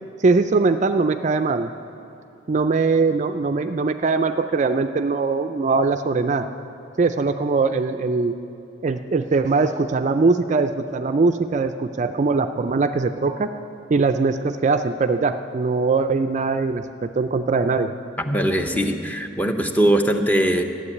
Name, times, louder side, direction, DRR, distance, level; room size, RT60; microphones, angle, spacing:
voice 1, 0.2-1.7 2.5-6.5 7.0-8.3 8.8-13.5 13.9-17.9, right 4 dB, 35° right, 9 dB, 0.4 m, -21 dB
voice 2, 18.3-20.6, right 1 dB, 10° left, 5 dB, 0.7 m, -20 dB
13.0 x 7.8 x 9.6 m, 2.8 s
head